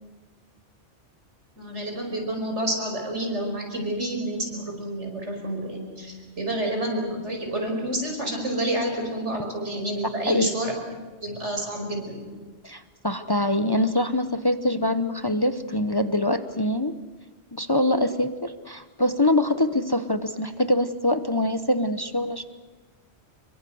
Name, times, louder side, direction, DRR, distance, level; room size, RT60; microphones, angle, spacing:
voice 1, 1.6-10.7 11.2-12.2, right 1 dB, 90° right, 2 dB, 5.5 m, -29 dB
voice 2, 12.6-16.9 17.5-22.5, left 1 dB, 25° left, 10 dB, 0.8 m, -24 dB
25.5 x 23.0 x 7.9 m, 1.3 s
omnidirectional pair, 1.2 m